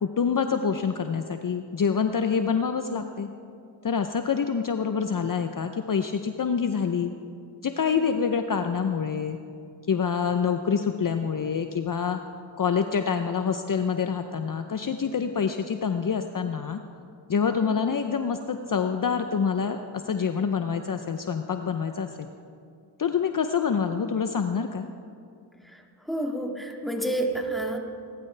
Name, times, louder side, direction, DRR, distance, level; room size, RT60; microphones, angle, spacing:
voice 1, 0.0-3.3 3.8-7.1 7.6-9.4 9.9-12.2 12.6-16.8 17.3-19.8 20.0-22.3 23.0-24.9, left 6 dB, 45° left, 7 dB, 0.7 m, -26 dB
voice 2, 7.8-8.2 17.6-17.9 25.6-27.8, right 1 dB, ahead, 1 dB, 2.1 m, -31 dB
20.0 x 12.5 x 3.3 m, 2.4 s
cardioid pair, 45°, 45 cm